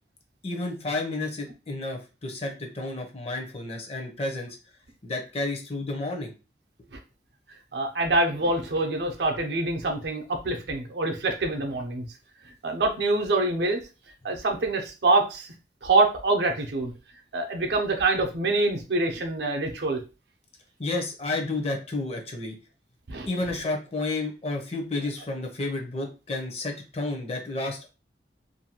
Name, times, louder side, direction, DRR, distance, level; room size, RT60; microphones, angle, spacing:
voice 1, 0.4-4.6 5.0-6.3 20.8-22.5 23.3-27.9, left 2 dB, 35° left, 3 dB, 0.6 m, -31 dB
voice 2, 7.7-12.1 12.4-13.8 14.2-15.5 15.8-16.9 17.3-20.0 23.1-23.3, right 2 dB, 70° right, 2 dB, 0.6 m, -25 dB
2.6 x 2.2 x 2.9 m, 0.31 s
head